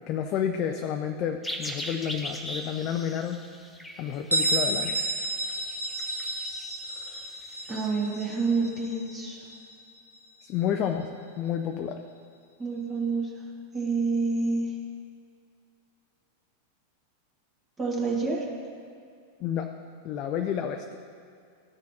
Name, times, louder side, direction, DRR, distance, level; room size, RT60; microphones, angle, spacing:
voice 1, 0.0-3.4 4.0-5.0 10.4-12.0 19.4-19.7 20.0-20.8, left 9 dB, 35° left, 5 dB, 0.4 m, -30 dB
sound 1, 1.4-7.9, equal, 5° left, 0.8 m, -40 dB
Bell, 4.3-9.8, right 1 dB, 85° right, 0.6 m, -31 dB
voice 2, 7.7-9.4 12.6-13.3 13.7-14.7 17.8-18.4, right 4 dB, 20° right, -4 dB, 1.6 m, -28 dB
14.5 x 6.2 x 2.8 m, 2.4 s
figure-of-eight pair, 90°, 0 cm